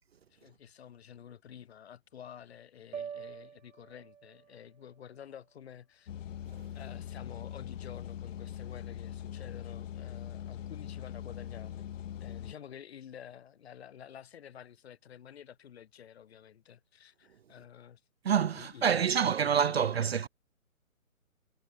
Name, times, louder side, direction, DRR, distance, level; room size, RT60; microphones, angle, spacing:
voice 1, 0.3-6.1 6.7-11.9 12.2-18.0 18.5-20.3, left 9 dB, 50° left, 7.1 m, -50 dB
sound 1, 2.9-7.2, right 7 dB, 65° right, 1.1 m, -48 dB
sound 2, 6.1-12.5, left 10 dB, 65° left, 0.5 m, -42 dB
voice 2, 18.2-20.3, right 7 dB, 50° right, 0.6 m, -27 dB
figure-of-eight pair, 140°, 42 cm